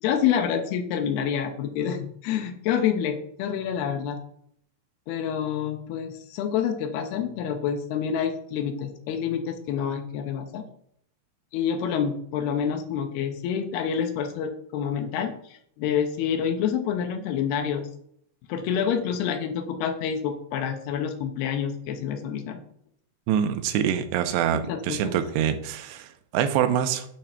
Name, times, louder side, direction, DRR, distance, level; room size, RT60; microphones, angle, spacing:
voice 1, 0.0-4.2 5.1-10.6 11.5-17.9 18.5-22.6 24.7-25.2, left 8 dB, 80° left, 6 dB, 2.6 m, -27 dB
voice 2, 23.3-27.1, right 9 dB, 85° right, 8 dB, 2.8 m, -25 dB
8.7 x 3.3 x 5.8 m, 0.70 s
omnidirectional pair, 4.7 m